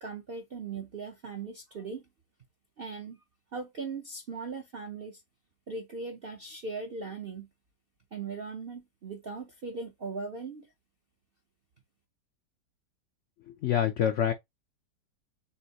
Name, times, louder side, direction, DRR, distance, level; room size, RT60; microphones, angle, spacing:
voice 1, 0.0-2.0 2.8-3.2 3.5-5.2 5.7-7.5 8.1-10.7, right 4 dB, 60° right, 0.6 m, -39 dB
voice 2, 13.5-14.3, left 9 dB, 80° left, 0.6 m, -26 dB
7.1 x 2.4 x 2.8 m
omnidirectional pair, 1.9 m